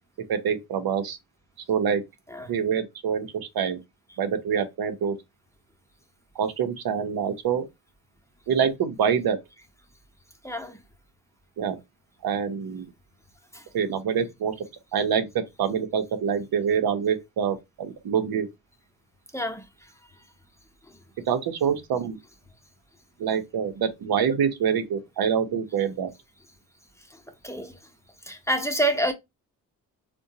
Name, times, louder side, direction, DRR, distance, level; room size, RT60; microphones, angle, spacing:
voice 1, 0.3-1.2 1.7-2.0 2.5-3.8 4.2-5.2 6.3-7.6 8.5-9.4 11.6-11.8 12.2-12.9 13.7-14.5 14.9-18.5 21.3-22.2 23.2-26.1, right 7 dB, 65° right, 0.8 m, -26 dB
voice 2, 10.4-10.8 13.5-13.6 19.3-19.6 27.4-27.7 28.3-29.1, right 1 dB, 5° left, 0.9 m, -27 dB
3.5 x 2.3 x 2.7 m
supercardioid pair, 45°, 39 cm